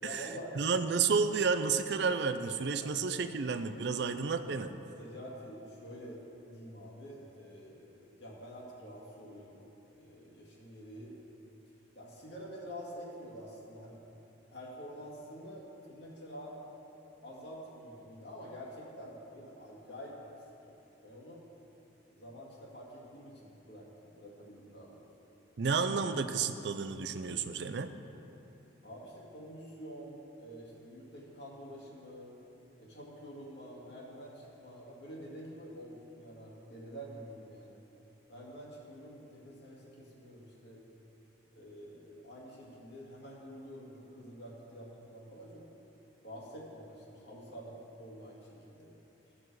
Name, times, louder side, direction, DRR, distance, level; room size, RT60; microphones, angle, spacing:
voice 1, 0.0-0.6 2.8-3.0 5.0-9.6 10.0-11.1 12.0-14.0 14.5-16.6 17.2-20.8 21.0-21.4 22.1-25.0 28.8-32.3 32.8-37.8 38.3-40.8 41.5-45.6 46.2-48.9, equal, 65° left, -4 dB, 2.2 m, -48 dB
voice 2, 0.6-4.7 25.6-27.9, right 5 dB, 60° right, 9 dB, 0.5 m, -31 dB
15.0 x 6.1 x 4.8 m, 3.0 s
head